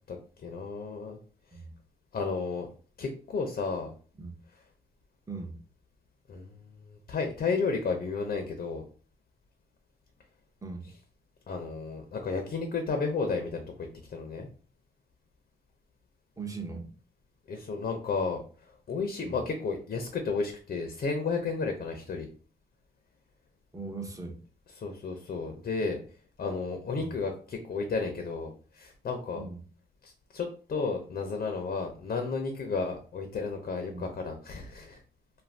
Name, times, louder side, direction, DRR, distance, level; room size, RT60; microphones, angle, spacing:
voice 1, 0.4-1.2 2.1-2.7 3.0-3.9 6.3-8.8 11.5-13.7 14.1-14.5 17.5-18.4 18.9-22.3 24.8-26.0 26.4-29.5 30.0-35.0, left 4 dB, 45° left, 4 dB, 0.6 m, -32 dB
voice 2, 5.3-5.6 10.6-10.9 16.4-16.9 19.2-19.4 23.7-24.4 27.0-27.1 29.3-29.6 33.9-34.0, right 3 dB, 15° right, 3 dB, 0.7 m, -39 dB
2.5 x 2.2 x 3.2 m, 0.41 s
cardioid pair, 70°, 20 cm